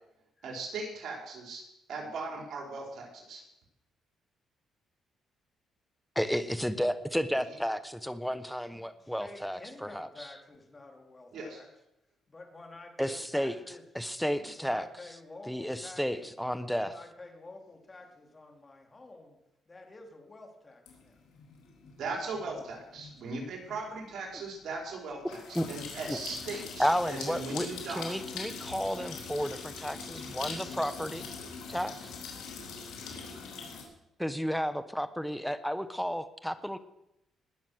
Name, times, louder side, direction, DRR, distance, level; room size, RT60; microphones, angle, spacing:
voice 1, 0.4-1.6 1.9-3.4 11.3-11.6 22.0-25.4 25.7-28.1, right 3 dB, 70° right, 0 dB, 4.6 m, -38 dB
voice 2, 6.1-10.1 13.0-13.5 13.9-14.9 15.5-16.9 25.5-25.7 26.1-26.2 26.5-31.3 31.7-32.2 34.2-36.8, equal, ahead, 11 dB, 1.1 m, -32 dB
voice 3, 8.7-11.7 12.3-13.8 14.6-16.3 16.8-19.4 19.7-21.2, left 2 dB, 25° left, 3 dB, 3.2 m, -50 dB
sound 1, 20.9-33.8, left 5 dB, 90° left, 3.4 m, -43 dB
20.0 x 7.2 x 6.4 m, 0.84 s
cardioid pair, 90°, 0 cm